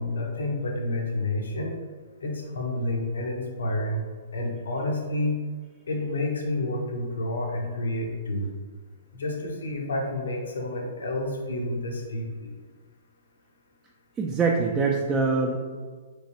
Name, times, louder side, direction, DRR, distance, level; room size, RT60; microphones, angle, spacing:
voice 1, 0.0-1.8 2.2-4.0 4.3-5.4 5.9-8.5 9.1-12.5, left 1 dB, 80° left, 1 dB, 0.6 m, -29 dB
voice 2, 14.2-15.6, right 4 dB, 20° right, -2 dB, 0.3 m, -24 dB
3.1 x 3.0 x 2.8 m, 1.5 s
hypercardioid pair, 130°, 0 cm